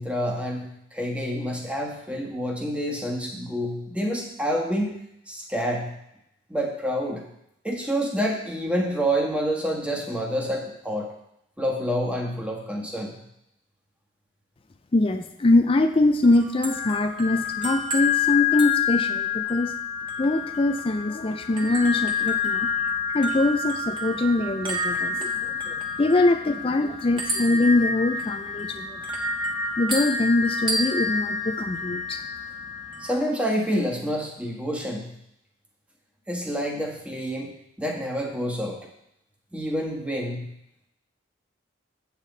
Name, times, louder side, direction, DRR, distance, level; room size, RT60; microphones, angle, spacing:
voice 1, 0.0-5.0 5.3-5.9 6.5-7.2 7.6-11.1 11.6-13.2 33.0-35.1 36.3-37.5 37.8-38.8 39.5-40.5, equal, 5° right, 1 dB, 1.3 m, -28 dB
voice 2, 14.9-19.7 20.2-22.7 23.1-25.3 25.7-29.0 29.8-32.2, left 2 dB, 30° left, 8 dB, 0.4 m, -23 dB
sound 1, 16.2-33.1, left 4 dB, 25° right, 1.4 m, -28 dB
8.3 x 8.2 x 4.0 m, 0.80 s
head